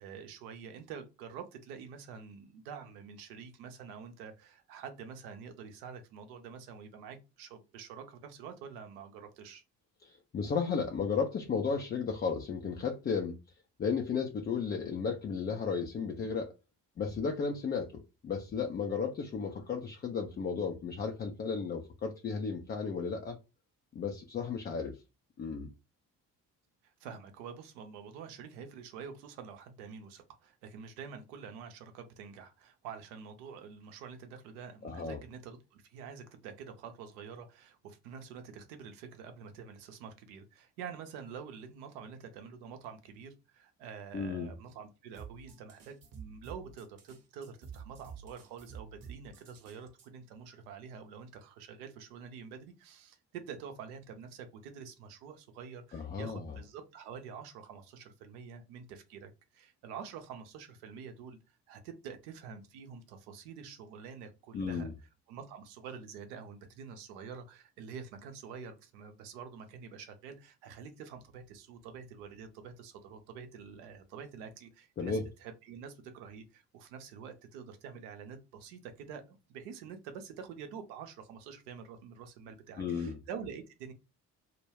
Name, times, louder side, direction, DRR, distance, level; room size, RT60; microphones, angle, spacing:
voice 1, 0.0-9.6 26.8-64.9 65.3-83.9, right 6 dB, 75° right, 0.7 m, -47 dB
voice 2, 10.0-13.4 13.8-16.5 17.0-23.4 23.9-25.0 25.4-25.7 34.8-35.2 44.1-44.5 55.9-56.6 64.5-64.9 75.0-75.3 82.8-83.2, left 5 dB, 25° left, 0.4 m, -34 dB
sound 1, 45.1-50.1, right 6 dB, 45° right, 1.0 m, -49 dB
2.2 x 2.1 x 3.3 m
figure-of-eight pair, 45°, 46 cm